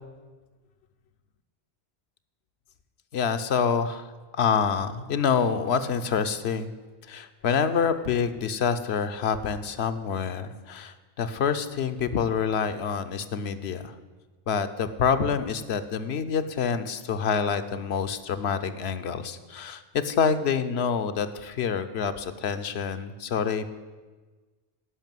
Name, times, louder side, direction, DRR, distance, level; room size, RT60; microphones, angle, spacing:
voice 1, 3.1-4.1 4.3-6.7 7.1-13.9 14.5-23.7, left 6 dB, 85° left, 10 dB, 1.0 m, -27 dB
11.5 x 5.9 x 9.0 m, 1.3 s
omnidirectional pair, 1.1 m